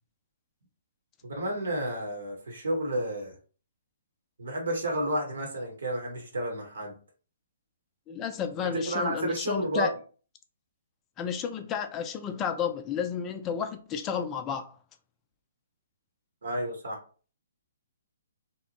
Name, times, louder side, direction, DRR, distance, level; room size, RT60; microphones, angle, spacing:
voice 1, 1.2-3.4 4.4-7.0 8.6-9.9 16.4-17.0, right 1 dB, 75° right, 0.9 m, -31 dB
voice 2, 8.1-9.9 11.2-14.7, left 7 dB, 20° left, 0.3 m, -32 dB
2.7 x 2.0 x 2.8 m
figure-of-eight pair, 130°, 0 cm